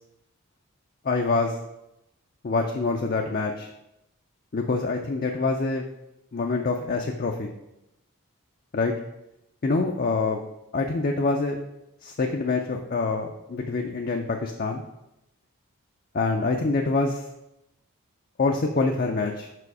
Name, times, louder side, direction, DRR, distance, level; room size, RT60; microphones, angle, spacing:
voice 1, 1.0-1.5 2.4-3.7 4.5-5.8 6.3-7.5 8.7-8.9 9.6-10.4 10.7-11.6 12.0-14.8 16.1-17.2 18.4-19.5, left 3 dB, 40° left, 2 dB, 0.4 m, -25 dB
5.7 x 4.8 x 4.7 m, 0.87 s
head